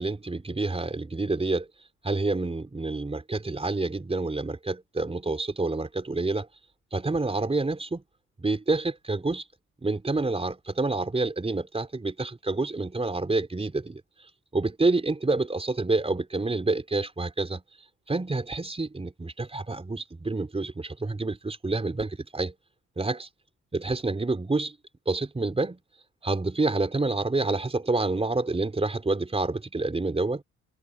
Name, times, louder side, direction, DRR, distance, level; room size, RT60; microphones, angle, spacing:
voice 1, 0.0-1.7 2.0-6.5 6.9-8.0 8.4-9.4 9.8-14.0 14.5-17.6 18.1-22.5 23.0-23.3 23.7-24.8 25.1-25.8 26.2-30.4, right 3 dB, 20° right, 4.2 m, -28 dB
cardioid pair, 90°, 30 cm